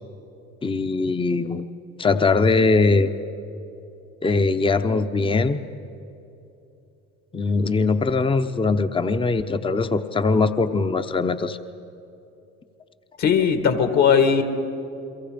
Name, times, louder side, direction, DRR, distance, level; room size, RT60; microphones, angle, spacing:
voice 1, 0.6-1.6 2.0-3.1 4.2-5.6 7.3-11.6, left 3 dB, 15° left, 10 dB, 0.8 m, -21 dB
voice 2, 13.2-14.4, left 7 dB, 55° left, 7 dB, 2.1 m, -18 dB
29.5 x 22.5 x 5.2 m, 2.8 s
supercardioid pair, 85°, 34 cm